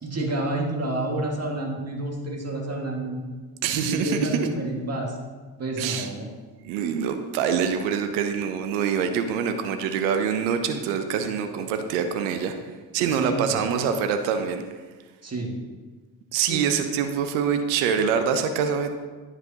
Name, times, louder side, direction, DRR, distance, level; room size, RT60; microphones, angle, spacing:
voice 1, 0.0-3.2 3.7-5.2 5.6-6.3 13.1-13.6 15.2-15.5 16.4-16.7, right 1 dB, 30° right, 0 dB, 1.8 m, -29 dB
voice 2, 3.6-4.5 5.8-6.1 6.6-12.6 12.9-14.6 16.3-18.9, right 7 dB, 85° right, 8 dB, 0.6 m, -25 dB
9.5 x 4.9 x 2.8 m, 1.4 s
hypercardioid pair, 50°, 50 cm